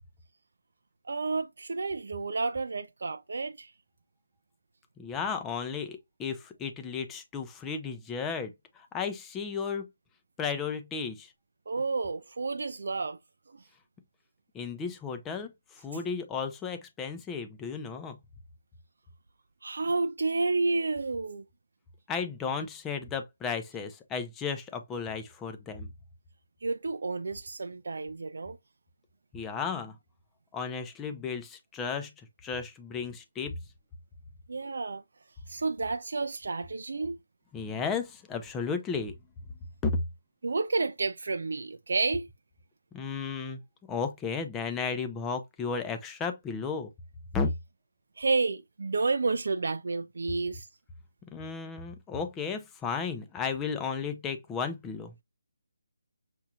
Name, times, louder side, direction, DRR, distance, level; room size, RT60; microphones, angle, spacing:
voice 1, 1.1-3.7 11.7-13.2 19.6-21.4 26.6-28.6 34.5-35.0 35.5-37.1 40.4-42.3 48.2-50.7, right 3 dB, 65° right, 0.4 m, -30 dB
voice 2, 5.0-9.9 10.4-11.3 14.5-15.5 15.8-18.2 22.1-25.9 29.3-30.0 30.5-32.1 32.4-33.5 37.5-39.1 39.8-40.0 42.9-43.6 43.9-46.9 47.3-47.5 51.3-55.1, left 5 dB, 10° left, 0.6 m, -34 dB
6.0 x 2.7 x 2.3 m
figure-of-eight pair, 160°, 0 cm